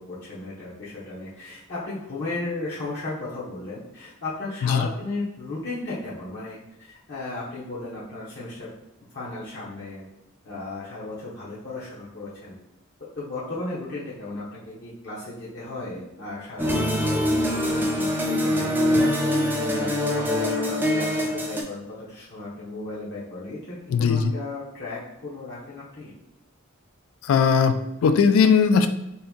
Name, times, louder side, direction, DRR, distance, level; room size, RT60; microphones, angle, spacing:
voice 1, 0.0-8.7 9.1-10.1 10.4-12.6 13.2-17.1 17.4-19.1 19.7-19.9 20.2-26.1, left 2 dB, 50° left, -7 dB, 0.8 m, -35 dB
sound 1, 16.6-21.6, left 1 dB, 10° right, 0.3 m, -23 dB
voice 2, 23.9-24.3 27.3-28.9, left 6 dB, 75° left, 9 dB, 0.3 m, -19 dB
2.8 x 2.6 x 3.6 m, 0.88 s
head